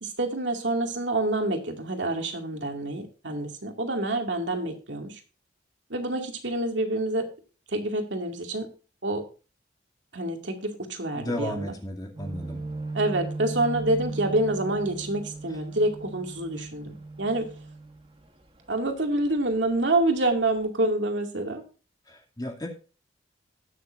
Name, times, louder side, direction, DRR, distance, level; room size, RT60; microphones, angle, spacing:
voice 1, 0.0-5.2 5.9-7.3 7.7-8.7 9.0-9.3 10.1-11.7 12.9-17.5 18.7-21.6, right 2 dB, 85° right, 3 dB, 2.4 m, -27 dB
voice 2, 11.1-12.6 22.1-22.7, left 1 dB, 20° left, 2 dB, 2.4 m, -34 dB
sound 1, 12.1-18.6 19.0-19.3 19.7-20.2 20.6-20.7, right 3 dB, 30° right, 1.8 m, -37 dB
20.0 x 6.7 x 2.6 m, 0.35 s
head